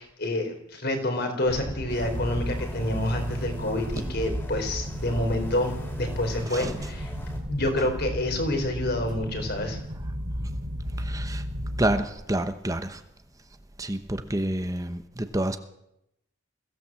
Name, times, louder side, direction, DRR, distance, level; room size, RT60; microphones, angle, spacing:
voice 1, 0.0-7.1 7.5-9.8, left 1 dB, 50° left, 5 dB, 4.6 m, -28 dB
sound 1, 1.9-7.4, equal, 10° left, 3.5 m, -42 dB
sound 2, 2.0-12.0, equal, 55° right, 3.2 m, -34 dB
voice 2, 11.0-11.4 11.8-13.0 13.8-15.6, right 1 dB, 15° right, 8 dB, 1.0 m, -28 dB
22.0 x 16.5 x 7.7 m, 0.83 s
head